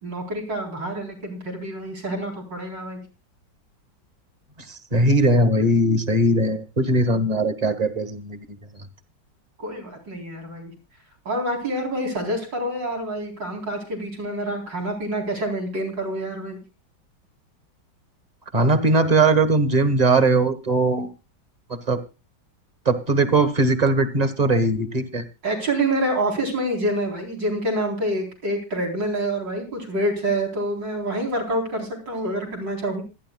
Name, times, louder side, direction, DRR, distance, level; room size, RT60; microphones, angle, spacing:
voice 1, 0.0-3.0 9.6-10.7 11.2-16.6 25.4-33.0, right 1 dB, 80° right, 2 dB, 4.7 m, -27 dB
voice 2, 4.7-8.6 18.5-21.1 21.7-22.0 22.8-25.2, right 2 dB, 25° right, 11 dB, 1.5 m, -20 dB
26.5 x 10.5 x 2.3 m, 0.29 s
omnidirectional pair, 1.9 m